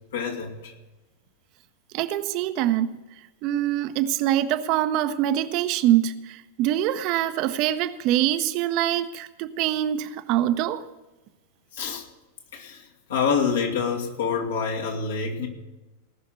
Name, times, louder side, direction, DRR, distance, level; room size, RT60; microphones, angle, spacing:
voice 1, 0.1-0.7 11.7-12.1 12.5-15.5, left 6 dB, 65° left, 0 dB, 2.4 m, -27 dB
voice 2, 1.9-3.0 3.4-10.9, right 12 dB, 40° right, 10 dB, 0.8 m, -24 dB
19.0 x 6.3 x 8.1 m, 1.1 s
figure-of-eight pair, 90°, 0 cm